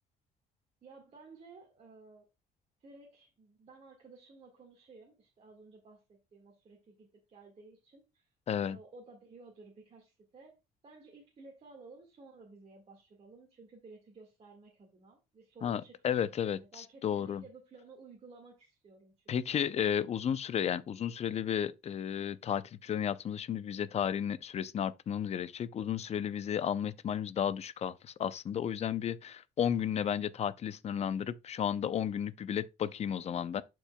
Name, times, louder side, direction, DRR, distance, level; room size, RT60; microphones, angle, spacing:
voice 1, 0.8-2.3 2.8-8.3 8.7-19.4, right 3 dB, 40° right, 1.7 m, -55 dB
voice 2, 8.5-8.8 15.6-17.4 19.3-33.6, left 9 dB, 40° left, 0.5 m, -33 dB
11.5 x 4.6 x 2.2 m
cardioid pair, 110°, 17 cm